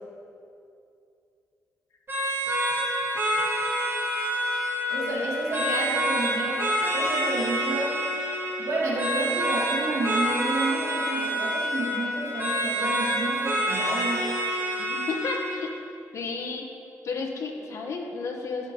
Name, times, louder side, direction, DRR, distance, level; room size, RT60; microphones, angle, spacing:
sound 1, 2.1-15.7, equal, 40° right, 2.9 m, -27 dB
voice 1, 4.9-8.0 8.6-14.3, right 2 dB, 60° right, -3 dB, 2.7 m, -30 dB
voice 2, 14.8-15.8 16.1-16.7 17.0-18.7, left 4 dB, 60° left, 2 dB, 1.4 m, -32 dB
14.5 x 7.6 x 4.0 m, 2.5 s
cardioid pair, 100°, 6 cm